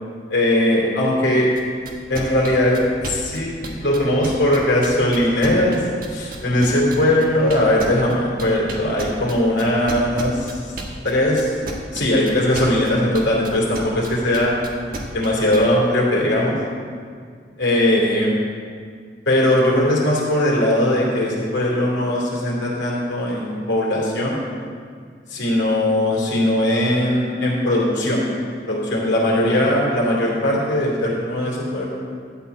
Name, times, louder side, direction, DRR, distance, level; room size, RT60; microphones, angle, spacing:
voice 1, 0.3-1.5 2.1-5.8 6.1-10.7 11.0-11.5 11.9-14.5 15.1-16.5 17.6-18.3 19.3-24.4 25.3-28.2 28.7-32.0, left 1 dB, 90° left, -4 dB, 3.0 m, -19 dB
sound 1, 1.5-15.6, right 2 dB, 50° right, 1.3 m, -32 dB
12.0 x 4.5 x 8.1 m, 2.1 s
head